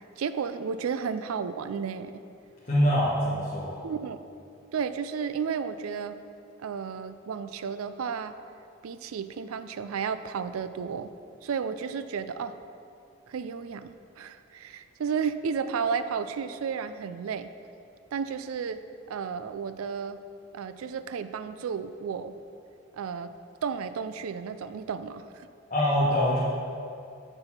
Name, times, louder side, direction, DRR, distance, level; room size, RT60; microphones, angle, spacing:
voice 1, 0.2-2.1 3.8-4.2 4.7-6.2 6.6-8.3 8.8-11.1 11.4-12.6 13.3-17.5 18.1-18.8 19.1-20.2 20.5-22.3 22.9-23.3 23.6-25.5, right 6 dB, 85° right, 12 dB, 0.4 m, -32 dB
voice 2, 2.6-3.8 25.7-26.4, equal, 35° left, -9 dB, 1.1 m, -24 dB
6.7 x 6.2 x 5.8 m, 2.5 s
head